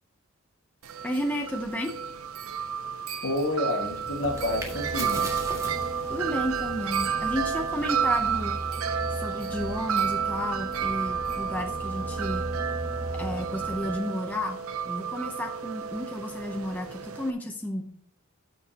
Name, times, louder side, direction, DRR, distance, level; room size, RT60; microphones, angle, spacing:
Wind chime, 0.8-17.3, right 7 dB, 75° right, 0.7 m, -31 dB
voice 1, 1.0-2.0 6.1-8.5 9.1-12.4 13.1-14.6 14.8-17.8, left 1 dB, 10° left, 1 dB, 0.7 m, -32 dB
voice 2, 3.2-5.2, left 1 dB, 55° left, 1 dB, 1.9 m, -29 dB
sound 1, 3.8-9.5, right 2 dB, 15° right, 1.7 m, -43 dB
sound 2, 4.2-14.0, right 1 dB, 30° right, 0.9 m, -38 dB
13.0 x 6.8 x 2.9 m, 0.62 s
head